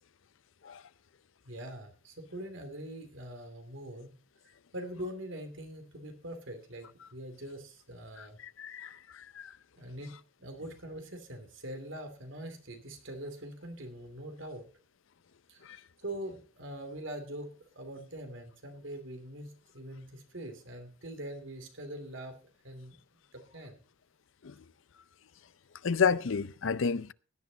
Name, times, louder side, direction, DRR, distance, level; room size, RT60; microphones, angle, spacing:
voice 1, 1.4-4.2 4.7-8.4 9.8-10.1 10.4-14.7 15.5-17.5 17.8-22.4 22.6-23.0 23.3-23.8, right 1 dB, 65° right, 2.7 m, -43 dB
voice 2, 8.4-9.5 24.4-24.5 25.8-27.1, left 6 dB, 65° left, 0.5 m, -30 dB
17.0 x 10.5 x 3.9 m
head